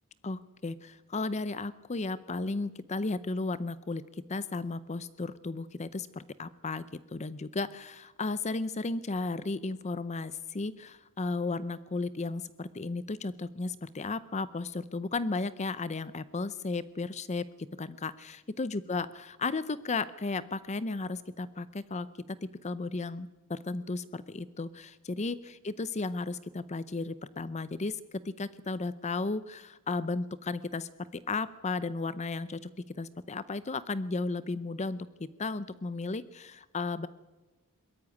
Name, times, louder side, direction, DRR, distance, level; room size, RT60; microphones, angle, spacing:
voice 1, 0.2-37.1, left 3 dB, 30° left, 16 dB, 0.6 m, -34 dB
22.0 x 13.5 x 9.4 m, 1.2 s
head